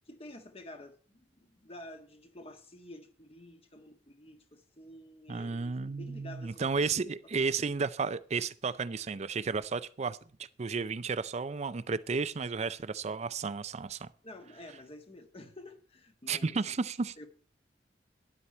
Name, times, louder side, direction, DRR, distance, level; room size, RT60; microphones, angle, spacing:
voice 1, 0.0-6.8 7.4-7.5 14.2-16.6 17.2-17.3, left 1 dB, 35° left, 1.5 m, -50 dB
voice 2, 5.3-14.1 16.3-17.1, right 4 dB, 40° right, 0.5 m, -33 dB
12.5 x 10.0 x 4.3 m
head